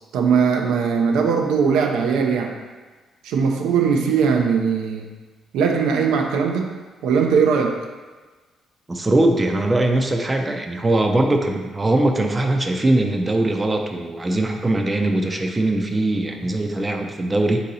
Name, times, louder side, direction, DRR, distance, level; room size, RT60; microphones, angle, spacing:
voice 1, 0.1-2.5 3.2-5.1 5.5-6.8 7.0-7.8, right 6 dB, 90° right, 2 dB, 0.4 m, -19 dB
voice 2, 8.9-17.6, right 2 dB, 20° right, 3 dB, 0.4 m, -21 dB
3.7 x 2.7 x 4.0 m, 1.3 s
cardioid pair, 90°, 0 cm